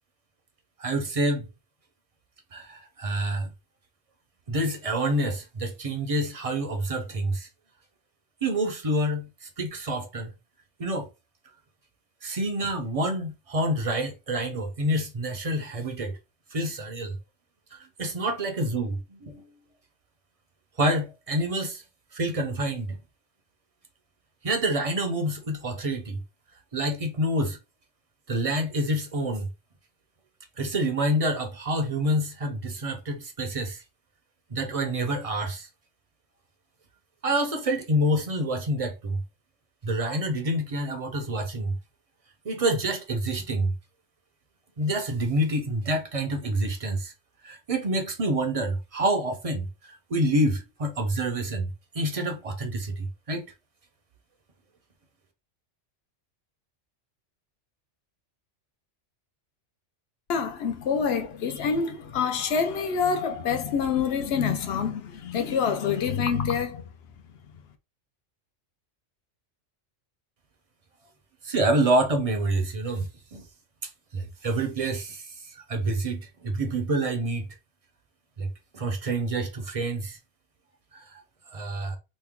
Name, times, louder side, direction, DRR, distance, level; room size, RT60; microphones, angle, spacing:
voice 1, 0.8-1.5 2.5-3.5 4.5-7.5 8.4-10.3 10.8-11.1 12.2-16.2 16.5-17.2 17.7-19.5 20.8-21.8 22.1-23.0 24.4-26.2 26.7-27.6 28.3-29.5 30.6-33.8 34.5-35.7 37.2-39.2 39.8-41.8 42.4-43.7 44.8-47.1 47.4-53.5 71.4-73.4 74.1-77.5 78.4-78.5 78.7-80.2 81.1-81.2 81.5-82.0, right 1 dB, 40° right, 0.5 m, -27 dB
voice 2, 60.3-66.8, left 6 dB, 65° left, 0.8 m, -26 dB
3.1 x 2.1 x 3.5 m
omnidirectional pair, 1.2 m